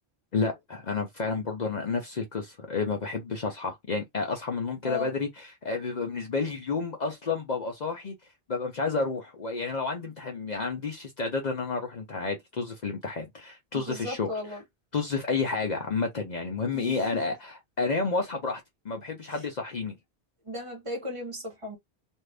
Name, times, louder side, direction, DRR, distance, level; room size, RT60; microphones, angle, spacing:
voice 1, 0.3-8.1 8.5-14.3 14.9-19.9, left 4 dB, 50° left, 0.7 m, -30 dB
voice 2, 13.7-14.6 16.7-17.2 19.3-19.4 20.4-21.8, left 2 dB, 30° right, 1.1 m, -36 dB
2.7 x 2.4 x 3.3 m
omnidirectional pair, 1.1 m